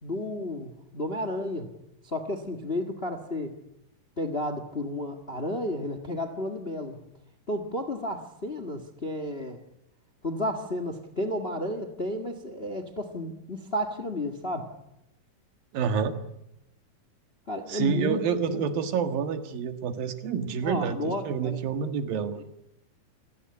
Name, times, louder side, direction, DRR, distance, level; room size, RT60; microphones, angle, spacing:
voice 1, 0.0-1.7 2.0-3.6 4.2-7.0 7.5-9.6 10.2-14.7 17.5-18.2 18.5-18.6 20.6-21.6 22.4-22.5, left 1 dB, 30° left, 9 dB, 1.1 m, -32 dB
voice 2, 15.7-16.2 17.7-22.4, right 6 dB, 75° right, 8 dB, 3.5 m, -28 dB
27.5 x 17.5 x 9.8 m, 0.86 s
omnidirectional pair, 4.1 m